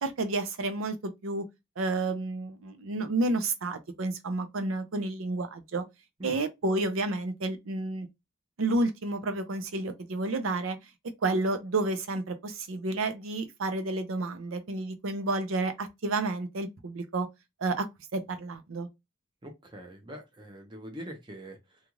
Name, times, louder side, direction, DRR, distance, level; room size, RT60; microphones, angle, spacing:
voice 1, 0.0-1.4 1.8-5.8 6.2-8.1 8.6-10.8 11.2-17.3 17.6-17.9 18.1-18.9, right 2 dB, 90° right, 0.6 m, -30 dB
voice 2, 19.4-21.8, equal, 25° right, 0.7 m, -43 dB
2.5 x 2.3 x 3.0 m
head